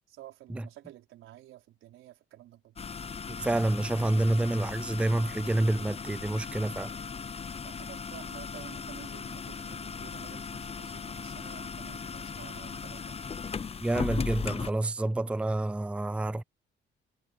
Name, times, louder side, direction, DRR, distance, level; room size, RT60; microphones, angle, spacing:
voice 1, 0.1-2.7 7.6-13.2, right 14 dB, 90° right, 5.2 m, -51 dB
sound 1, 2.8-14.7, left 5 dB, 30° left, 0.8 m, -38 dB
voice 2, 3.4-6.9 13.8-16.4, right 1 dB, 5° right, 0.5 m, -28 dB
cardioid pair, 90°, 20 cm